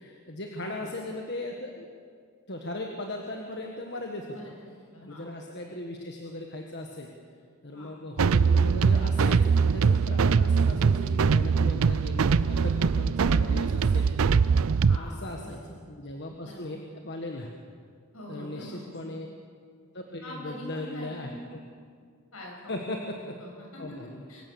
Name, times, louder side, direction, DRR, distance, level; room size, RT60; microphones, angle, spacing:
voice 1, 0.0-1.9 2.5-4.5 5.0-7.1 7.6-14.1 14.9-17.5 18.3-19.3 19.9-21.3 22.7-23.4 23.8-24.2, left 1 dB, 50° left, 2 dB, 1.6 m, -38 dB
voice 2, 4.9-5.3 7.7-7.9 13.3-13.5 14.8-15.6 16.4-16.8 18.1-18.8 19.0-19.2 20.2-21.5 22.3-22.8 23.2-23.8 24.3-24.5, left 1 dB, 70° left, -1 dB, 7.2 m, -44 dB
sound 1, 8.2-15.0, right 5 dB, 70° right, 0.5 m, -22 dB
24.5 x 16.5 x 7.1 m, 2.1 s
head